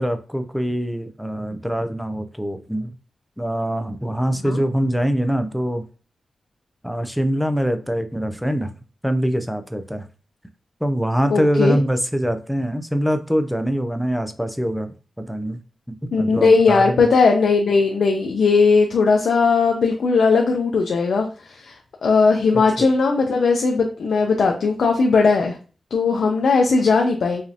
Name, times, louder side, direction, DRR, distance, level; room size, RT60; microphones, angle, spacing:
voice 1, 0.0-2.9 3.4-5.8 6.8-8.7 9.0-10.1 10.8-15.6 16.0-17.1 22.8-22.9, equal, ahead, 8 dB, 0.4 m, -23 dB
voice 2, 11.3-11.8 16.1-21.8 22.0-25.6 25.9-27.4, left 4 dB, 75° left, 2 dB, 0.5 m, -18 dB
4.9 x 2.6 x 2.7 m, 0.37 s
wide cardioid pair, 150°, 0 cm